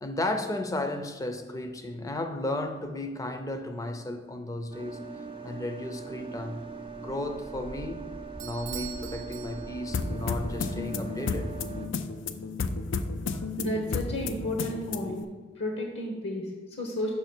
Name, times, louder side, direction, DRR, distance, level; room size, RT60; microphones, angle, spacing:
voice 1, 0.0-5.1 5.4-6.6 7.0-8.0 8.4-11.5 13.1-13.4, left 1 dB, 20° left, 6 dB, 0.6 m, -34 dB
sound 1, 4.7-11.9, right 4 dB, 25° right, 0.5 m, -40 dB
Bell / Doorbell, 8.4-10.1, right 10 dB, 85° right, 0.6 m, -43 dB
sound 2, 9.9-15.2, left 4 dB, 80° left, 0.5 m, -32 dB
voice 2, 13.6-15.3 15.6-17.1, left 1 dB, 65° left, 0 dB, 1.0 m, -32 dB
6.9 x 5.4 x 4.4 m, 1.3 s
head